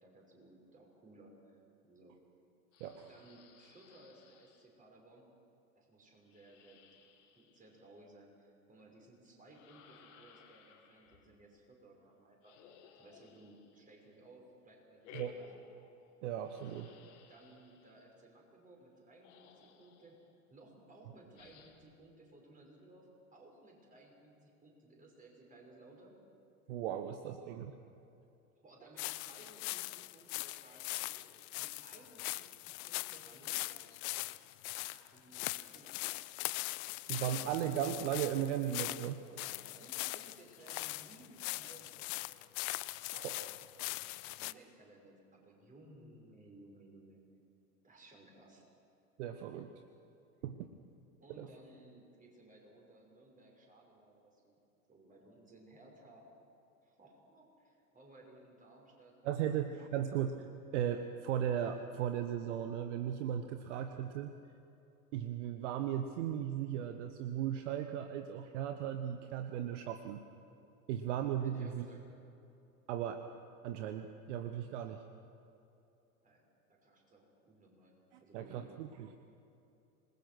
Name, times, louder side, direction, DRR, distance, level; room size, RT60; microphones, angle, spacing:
voice 1, 0.0-2.1 3.1-5.3 5.7-6.8 7.3-12.5 12.9-15.6 17.3-20.2 20.5-26.2 28.6-31.3 31.6-33.8 34.8-36.0 36.9-37.6 39.3-42.3 44.3-47.2 47.8-48.7 51.2-54.6 54.9-56.3 56.8-59.8 71.4-72.1 76.2-78.6, right 2 dB, 20° right, 0 dB, 6.2 m, -59 dB
sound 1, 2.7-4.7 6.2-8.1 9.5-11.3 12.4-14.1 15.0-16.1 16.4-18.0 18.9-19.0 19.2-20.3 21.3-21.9, left 7 dB, 50° left, 2.7 m, -60 dB
voice 2, 16.2-16.9 26.7-27.8 37.1-39.2 43.1-43.5 49.2-49.7 50.4-50.7 51.4-51.5 59.2-60.5 60.7-64.3 65.1-70.2 70.9-71.9 72.9-73.2 73.6-75.0 78.1-79.2, right 10 dB, 50° right, 8 dB, 1.2 m, -37 dB
sound 2, 29.0-44.5, left 23 dB, 30° left, 0.4 m, -41 dB
26.5 x 20.5 x 6.2 m, 2.8 s
figure-of-eight pair, 85°, 44 cm